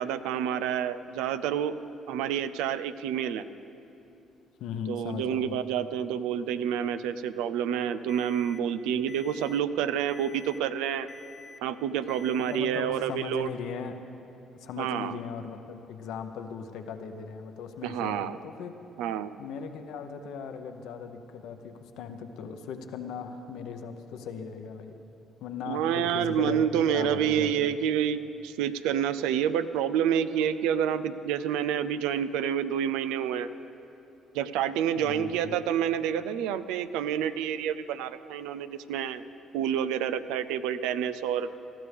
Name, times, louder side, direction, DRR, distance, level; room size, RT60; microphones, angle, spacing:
voice 1, 0.0-1.8 2.1-3.4 4.9-11.1 11.6-13.5 14.8-15.2 17.8-18.4 19.0-19.3 25.7-33.5 34.3-39.2 39.5-41.5, right 9 dB, 85° right, 12 dB, 0.4 m, -28 dB
voice 2, 4.6-5.7 12.4-13.9 14.6-18.8 19.4-25.0 25.4-26.6 26.9-27.8 35.0-35.5, left 6 dB, 75° left, 7 dB, 0.8 m, -38 dB
Alarm, 8.1-8.6 9.1-9.6 10.1-10.6 11.1-11.6 12.1-12.6, left 4 dB, 30° left, 0.9 m, -48 dB
19.0 x 13.5 x 3.4 m, 2.9 s
supercardioid pair, 65°, 0 cm